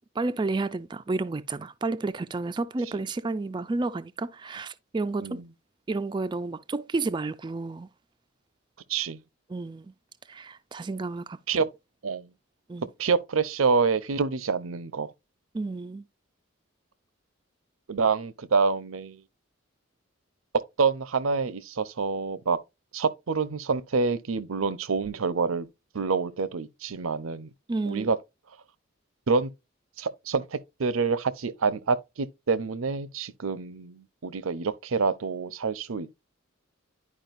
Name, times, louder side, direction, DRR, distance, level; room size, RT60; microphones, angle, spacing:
voice 1, 0.2-5.4 5.9-7.9 9.5-9.9 10.3-11.4 12.7-12.9 15.5-16.0 27.7-28.1, right 3 dB, 20° right, 0.3 m, -31 dB
voice 2, 13.0-15.1 17.9-19.2 20.8-22.6 22.9-25.7 25.9-27.5 27.9-28.2 29.3-29.5 30.0-36.2, right 4 dB, 85° right, 0.7 m, -27 dB
11.0 x 4.9 x 2.5 m
head